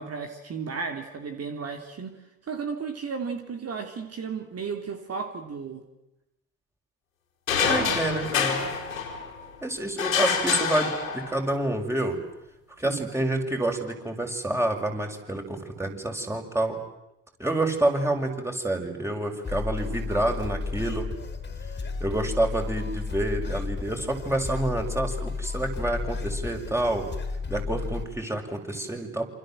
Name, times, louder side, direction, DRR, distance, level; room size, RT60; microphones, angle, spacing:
voice 1, 0.0-2.1 2.5-5.8 7.6-8.2 12.8-13.0, right 5 dB, 40° right, 6 dB, 3.2 m, -34 dB
sound 1, 7.5-9.5 10.0-11.5, left 6 dB, 85° left, 4.4 m, -27 dB
voice 2, 7.7-8.6 9.6-12.2 12.8-16.8 17.4-21.1 22.0-27.1 27.5-29.3, right 1 dB, 5° right, 3 dB, 6.6 m, -28 dB
sound 2, 19.4-28.0, left 4 dB, 25° left, 4.4 m, -33 dB
28.0 x 26.5 x 7.8 m, 0.91 s
hypercardioid pair, 60°, 39 cm